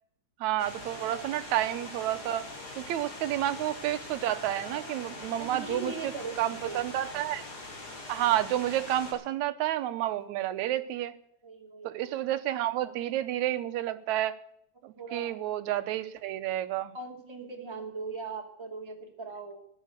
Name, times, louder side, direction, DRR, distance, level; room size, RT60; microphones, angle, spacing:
voice 1, 0.4-2.5 2.8-6.1 6.4-7.4 8.1-11.1 11.8-14.3 14.8-16.9, right 13 dB, 80° right, 11 dB, 2.1 m, -30 dB
sound 1, 0.6-9.1, left 2 dB, 80° left, 6.0 m, -43 dB
voice 2, 5.4-6.8 11.4-12.1 14.9-15.4 16.9-19.6, right 3 dB, 10° right, 1 dB, 2.2 m, -40 dB
15.5 x 10.0 x 7.9 m, 0.72 s
omnidirectional pair, 3.4 m